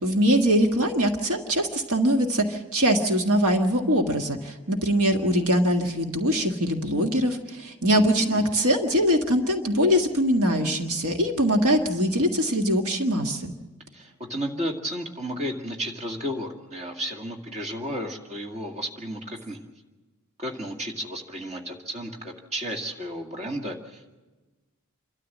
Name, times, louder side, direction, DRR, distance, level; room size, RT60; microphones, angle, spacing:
voice 1, 0.0-13.5, equal, 70° right, 4 dB, 1.7 m, -22 dB
voice 2, 7.9-8.5 13.9-19.6 20.4-24.1, equal, 30° right, 2 dB, 2.2 m, -33 dB
27.5 x 13.0 x 7.4 m, 1.2 s
head